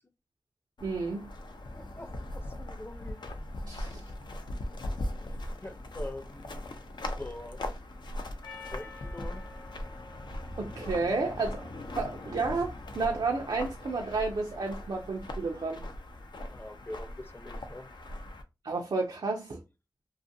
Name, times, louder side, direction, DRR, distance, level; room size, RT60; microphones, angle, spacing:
sound 1, 0.8-18.4, left 1 dB, 85° left, 0.4 m, -40 dB
voice 1, 0.8-1.3 3.7-4.0 10.6-11.7 12.0-15.8 18.6-19.6, right 3 dB, 85° right, 0.4 m, -31 dB
voice 2, 1.7-3.2 5.2-6.7 7.2-7.6 8.7-9.4 16.5-17.9, left 1 dB, 30° left, 0.6 m, -44 dB
Percussion, 8.4-12.9, left 4 dB, 55° left, 0.9 m, -51 dB
2.5 x 2.4 x 2.6 m
cardioid pair, 45°, 7 cm